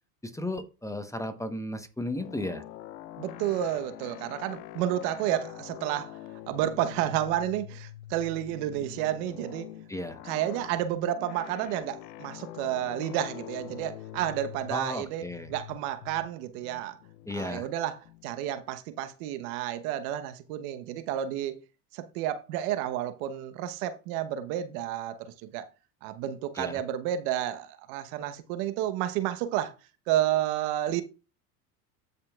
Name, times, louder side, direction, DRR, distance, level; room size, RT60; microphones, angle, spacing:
voice 1, 0.2-2.6 9.9-10.2 14.7-15.5 17.3-17.7 26.6-26.8, left 1 dB, 5° left, 0.9 m, -34 dB
sound 1, 2.1-18.7, left 13 dB, 80° left, 0.6 m, -45 dB
voice 2, 3.2-6.2 6.5-9.7 10.2-17.0 17.3-21.6 21.9-25.7 26.0-29.7 30.1-31.0, right 12 dB, 65° right, 1.1 m, -31 dB
14.5 x 5.6 x 2.3 m
hypercardioid pair, 85°, 49 cm